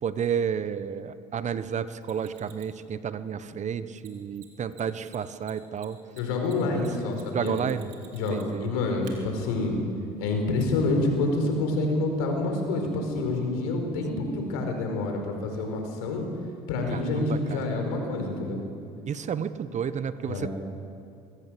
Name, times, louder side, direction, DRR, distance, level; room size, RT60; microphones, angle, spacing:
voice 1, 0.0-6.0 6.7-7.9 8.3-8.7 16.9-17.6 19.1-20.5, right 7 dB, 40° right, 13 dB, 1.1 m, -31 dB
Mechanisms, 2.0-2.8 4.0-4.1 4.3-4.5 4.7-4.8 5.1-8.6 9.0-9.1 10.6-10.7, right 13 dB, 80° right, 3.3 m, -52 dB
voice 2, 6.2-7.6 8.1-9.8 10.2-16.2 16.7-18.6 20.3-20.5, left 2 dB, 80° left, 3 dB, 4.8 m, -27 dB
23.5 x 16.5 x 7.7 m, 2.5 s
hypercardioid pair, 75°, 18 cm